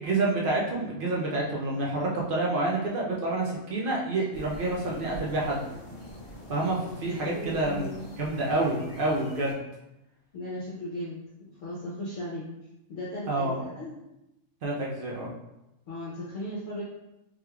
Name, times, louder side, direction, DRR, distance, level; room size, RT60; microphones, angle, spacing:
voice 1, 0.0-5.6 6.5-7.8 8.2-9.6 13.2-13.6 14.6-15.3, right 2 dB, 75° right, -3 dB, 0.4 m, -28 dB
sound 1, 4.3-9.5, equal, 35° left, 1.2 m, -44 dB
voice 2, 7.2-8.1 10.3-12.5 12.9-13.9 15.9-16.8, left 1 dB, 65° left, -7 dB, 1.0 m, -37 dB
3.5 x 3.1 x 2.2 m, 0.91 s
omnidirectional pair, 1.6 m